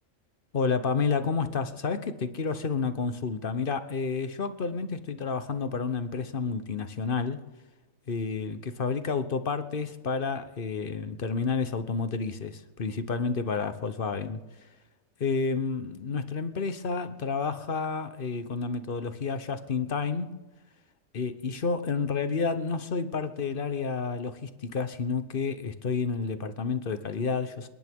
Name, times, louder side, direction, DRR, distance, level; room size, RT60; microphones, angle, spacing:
voice 1, 0.5-7.4 8.1-14.4 15.2-20.3 21.1-27.7, left 5 dB, 45° left, 1.0 m, -30 dB
27.0 x 10.5 x 3.7 m
omnidirectional pair, 1.4 m